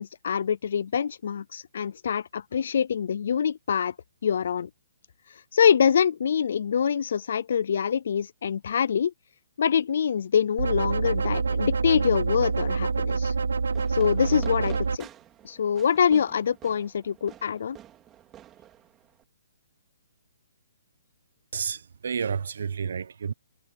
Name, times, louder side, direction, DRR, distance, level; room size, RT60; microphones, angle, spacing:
voice 1, 0.0-3.9 4.2-4.7 5.3-9.1 9.6-13.3 13.9-15.1 15.4-17.8, left 7 dB, 60° left, 0.4 m, -25 dB
sound 1, 10.6-15.0, right 4 dB, 90° right, 0.4 m, -26 dB
Fireworks, 13.7-19.2, right 12 dB, 15° right, 3.7 m, -48 dB
voice 2, 21.5-23.3, right 6 dB, 70° right, 1.0 m, -30 dB
hypercardioid pair, 160°, 0 cm